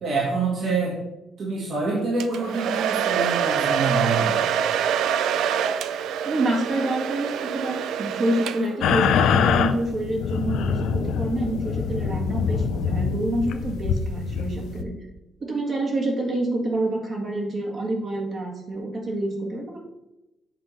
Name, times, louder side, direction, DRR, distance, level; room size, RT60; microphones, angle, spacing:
voice 1, 0.0-1.0 1.4-4.4, right 3 dB, 60° right, -5 dB, 2.1 m, -26 dB
Domestic sounds home sounds, 2.2-8.9, right 8 dB, 80° right, 0.4 m, -25 dB
voice 2, 6.2-14.9 15.4-19.8, right 1 dB, 45° right, -2 dB, 1.8 m, -27 dB
sound 1, 8.8-14.8, left 6 dB, 80° left, 0.5 m, -24 dB
7.4 x 3.7 x 5.9 m, 0.95 s
cardioid pair, 90°, 0 cm